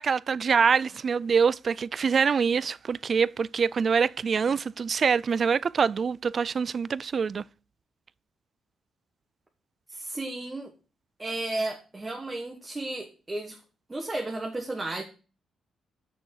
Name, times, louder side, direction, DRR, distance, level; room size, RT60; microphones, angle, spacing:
voice 1, 0.0-7.4, right 6 dB, 45° right, 0.3 m, -25 dB
voice 2, 9.9-10.7 11.2-13.6 13.9-15.0, right 2 dB, 20° right, 1.4 m, -33 dB
6.6 x 6.4 x 6.5 m
cardioid pair, 100°, 0 cm